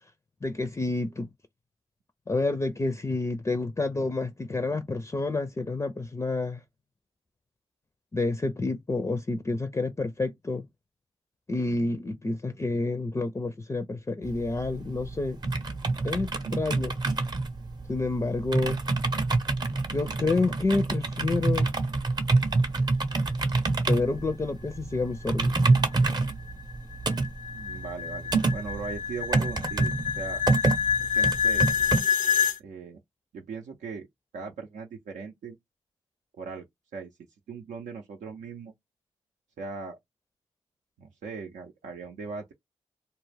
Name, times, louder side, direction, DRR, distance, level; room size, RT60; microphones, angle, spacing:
voice 1, 0.4-1.3 2.3-6.6 8.1-10.7 11.5-15.4 16.0-17.0 17.9-18.8 19.9-21.7 23.9-25.6, left 3 dB, 25° left, 0.5 m, -29 dB
sound 1, 14.2-32.0, right 3 dB, 35° right, 0.7 m, -27 dB
sound 2, 25.4-32.6, left 6 dB, 80° left, 0.5 m, -28 dB
voice 2, 27.5-30.7 31.1-31.7 32.6-33.0 33.3-34.1 34.3-35.6 36.4-36.7 36.9-37.1 37.5-38.7 39.6-40.0 41.0-42.5, right 5 dB, 80° right, 0.5 m, -39 dB
2.2 x 2.0 x 3.3 m
supercardioid pair, 45°, 12 cm